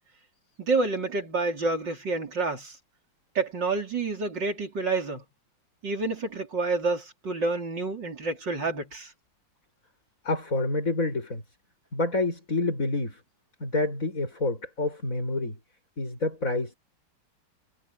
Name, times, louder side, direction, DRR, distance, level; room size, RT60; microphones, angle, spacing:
voice 1, 0.6-2.8 3.3-5.2 5.8-9.1, right 3 dB, 75° right, 4.6 m, -28 dB
voice 2, 10.2-11.4 11.9-13.2 13.6-15.6 16.0-16.7, left 2 dB, 45° left, 7.1 m, -28 dB
omnidirectional pair, 2.0 m